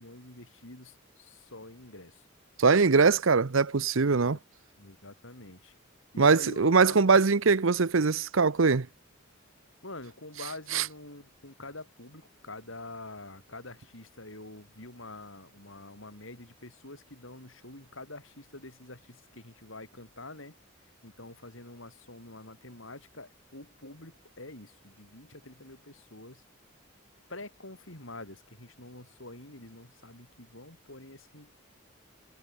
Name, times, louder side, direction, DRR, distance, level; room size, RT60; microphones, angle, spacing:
voice 1, 0.0-2.3 4.0-4.4 4.8-5.8 6.1-7.0 9.8-20.6 21.0-26.4 27.3-31.5, left 2 dB, 75° left, 7.4 m, -46 dB
voice 2, 2.6-4.4 6.2-8.9 10.7-10.8, right 4 dB, 75° right, 0.8 m, -22 dB
head